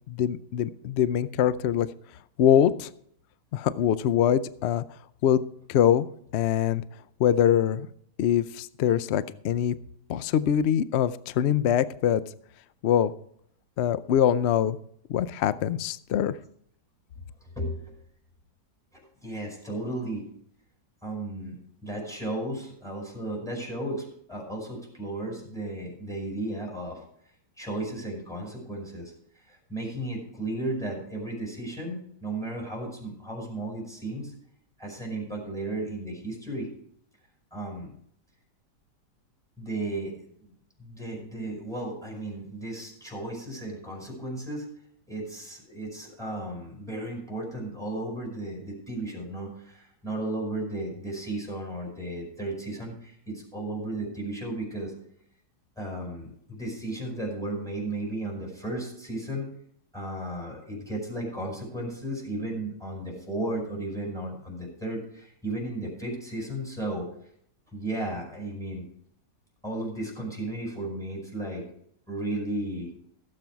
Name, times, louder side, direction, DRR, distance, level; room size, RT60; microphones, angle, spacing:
voice 1, 0.1-1.9 2.4-2.9 3.5-4.8 5.2-5.4 5.7-6.1 6.3-6.8 7.2-7.9 8.2-9.7 10.1-12.2 12.8-13.1 13.8-14.8 15.1-16.4, left 10 dB, 70° left, 15 dB, 0.6 m, -23 dB
voice 2, 17.6-18.0 18.9-20.2 21.0-27.0 27.6-29.1 29.5-34.3 34.8-36.7 37.5-37.9 39.6-40.2 40.8-44.7 45.1-54.9 55.8-59.5 59.9-67.1 67.7-68.9 69.6-71.6 72.1-72.9, right 1 dB, ahead, -2 dB, 5.1 m, -34 dB
16.5 x 7.7 x 4.6 m, 0.67 s
omnidirectional pair, 1.8 m